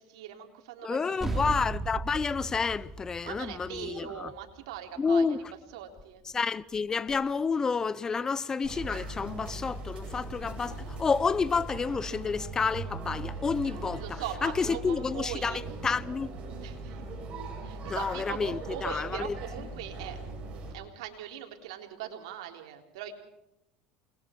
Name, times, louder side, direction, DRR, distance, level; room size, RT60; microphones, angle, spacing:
voice 1, 0.0-1.5 3.2-5.5 5.7-6.2 14.0-15.6 16.6-17.0 17.6-20.2 20.7-23.1, right 10 dB, 85° right, 3.7 m, -41 dB
voice 2, 0.8-4.3 5.0-5.4 6.3-16.3 17.9-19.3, left 5 dB, 20° left, 0.7 m, -30 dB
sound 1, 1.2-6.0, right 3 dB, 10° right, 2.6 m, -37 dB
sound 2, 8.6-20.7, right 3 dB, 35° right, 7.9 m, -40 dB
28.5 x 21.0 x 4.6 m
supercardioid pair, 115°, 3 cm